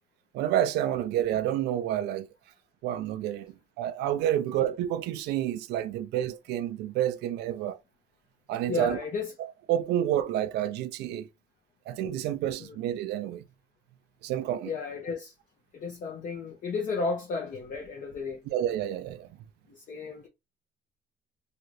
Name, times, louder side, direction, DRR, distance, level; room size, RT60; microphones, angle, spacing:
voice 1, 0.3-2.3 2.8-7.8 8.5-9.0 9.7-11.3 11.9-13.4 14.2-14.7 18.5-19.3, right 11 dB, 80° right, 0.5 m, -29 dB
voice 2, 8.7-9.3 12.6-12.8 14.6-15.3 15.7-18.4 19.7-20.3, left 4 dB, 50° left, 0.8 m, -33 dB
2.8 x 2.4 x 3.2 m
cardioid pair, 110°, 17 cm